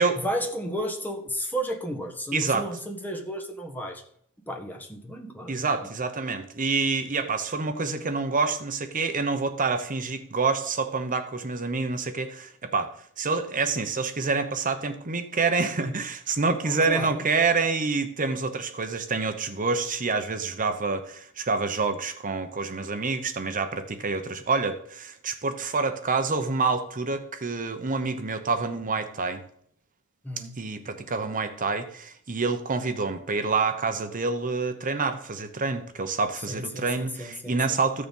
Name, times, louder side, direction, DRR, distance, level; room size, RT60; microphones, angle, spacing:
voice 1, 0.0-4.0 4.5-5.9 16.6-17.2 30.2-30.6 36.5-37.8, equal, 10° left, 2 dB, 1.5 m, -33 dB
voice 2, 2.3-2.7 5.5-29.4 30.4-38.1, right 4 dB, 40° right, 8 dB, 0.9 m, -27 dB
14.5 x 6.7 x 5.4 m, 0.65 s
head